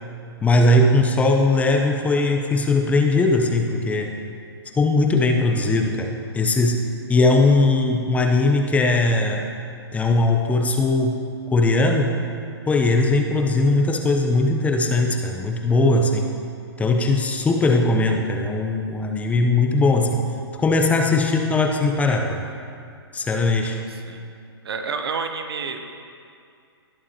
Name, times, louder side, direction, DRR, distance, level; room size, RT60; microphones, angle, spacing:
voice 1, 0.4-4.1 4.8-6.8 7.1-9.5 9.9-11.2 11.5-12.2 12.7-16.3 16.8-20.3 20.5-22.4 23.1-23.8, left 2 dB, 10° left, 3 dB, 0.6 m, -19 dB
voice 2, 23.7-24.3 24.6-25.8, right 5 dB, 65° right, 6 dB, 0.9 m, -30 dB
19.0 x 6.8 x 2.9 m, 2.4 s
hypercardioid pair, 125°, 14 cm